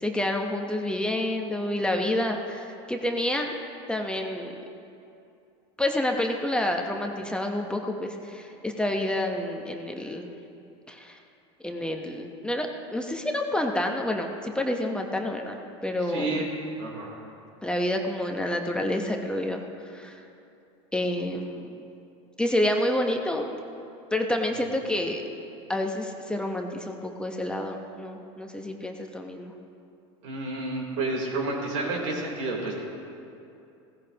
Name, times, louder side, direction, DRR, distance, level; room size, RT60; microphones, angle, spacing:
voice 1, 0.0-3.5 3.9-4.5 5.8-10.3 10.9-11.2 11.6-16.4 17.6-20.2 20.9-21.8 22.4-23.5 24.1-25.2 25.7-29.5, left 1 dB, 5° left, 2 dB, 1.0 m, -28 dB
voice 2, 16.1-16.5 16.8-17.2 30.2-32.8, right 2 dB, 80° right, -2 dB, 3.7 m, -30 dB
16.5 x 15.5 x 3.0 m, 2.7 s
supercardioid pair, 105°, 15 cm